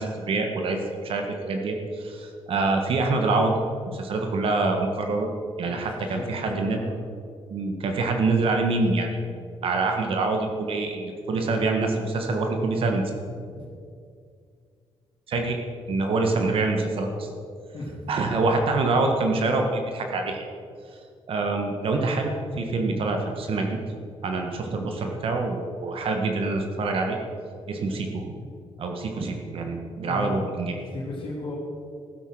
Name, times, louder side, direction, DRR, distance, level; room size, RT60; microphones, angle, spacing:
voice 1, 0.0-3.5 3.9-5.3 5.6-6.8 7.5-9.2 9.6-13.0 15.3-15.6 15.9-17.3 18.1-20.4 21.3-23.8 24.2-27.2 27.7-28.3 28.8-30.8, right 3 dB, 65° right, 3 dB, 1.5 m, -25 dB
voice 2, 5.6-6.9 13.5-13.6 17.7-18.1 30.1-30.4 30.9-31.6, left 2 dB, 55° left, -3 dB, 2.9 m, -35 dB
15.0 x 8.2 x 6.2 m, 2.3 s
cardioid pair, 120°, 10 cm